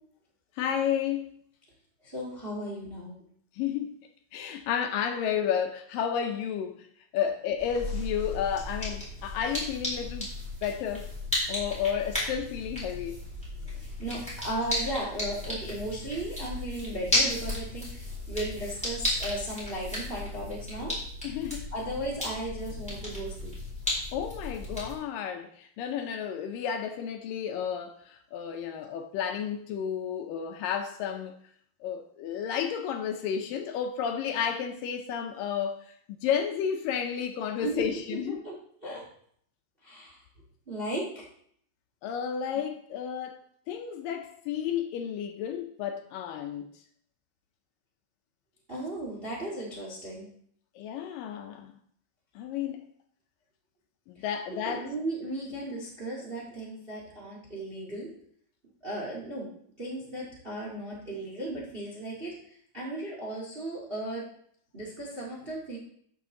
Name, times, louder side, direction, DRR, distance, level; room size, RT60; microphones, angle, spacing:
voice 1, 0.6-1.3 3.6-3.9 4.3-6.9 7.1-10.3 10.6-11.1 11.5-13.2 21.2-21.7 24.1-31.3 31.8-35.8 36.1-38.4 42.0-43.4 43.7-46.7 50.8-51.7 52.4-52.9 54.1-54.9, left 8 dB, 75° left, 2.2 m, -32 dB
voice 2, 2.0-3.2 4.4-4.5 14.0-21.0 21.7-23.5 37.6-37.8 38.3-38.5 38.8-39.0 39.8-40.2 40.7-41.2 48.7-50.3 54.1-54.2 54.6-58.1 58.8-59.5 59.8-62.3 62.7-64.3 64.7-65.8, right 1 dB, 30° right, 1.1 m, -36 dB
sound 1, 7.6-24.9, left 1 dB, ahead, 3.7 m, -34 dB
13.0 x 5.8 x 3.8 m
omnidirectional pair, 4.3 m